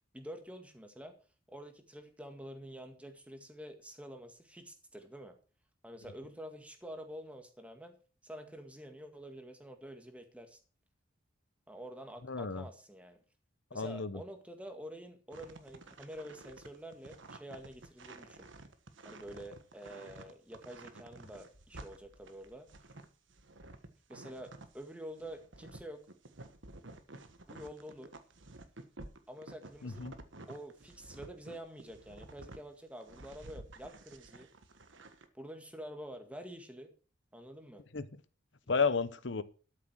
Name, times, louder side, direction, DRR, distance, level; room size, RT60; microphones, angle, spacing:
voice 1, 0.1-1.1 1.5-5.3 5.8-8.0 8.2-10.6 11.7-13.2 13.7-18.5 19.0-22.7 24.1-26.0 27.5-28.1 29.3-30.1 30.5-34.5 35.3-36.9 37.3-37.8, equal, 5° right, 6 dB, 1.9 m, -48 dB
voice 2, 12.3-12.6 13.7-14.2 29.8-30.1 37.9-38.0 38.7-39.4, left 5 dB, 65° left, 15 dB, 0.9 m, -32 dB
sound 1, 15.3-24.8 25.2-32.6 33.0-35.3, right 2 dB, 70° right, 1.5 m, -52 dB
13.0 x 7.5 x 6.3 m, 0.38 s
head